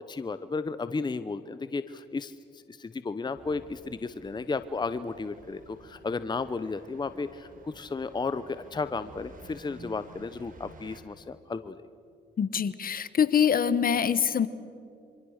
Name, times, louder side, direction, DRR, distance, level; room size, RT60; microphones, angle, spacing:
voice 1, 0.1-11.8, left 4 dB, 20° left, 12 dB, 0.8 m, -34 dB
sound 1, 3.4-11.0, right 3 dB, 45° right, 3.7 m, -52 dB
voice 2, 12.4-14.5, left 7 dB, 50° left, 15 dB, 1.2 m, -24 dB
27.0 x 24.5 x 6.6 m, 2.5 s
cardioid pair, 85°, 19 cm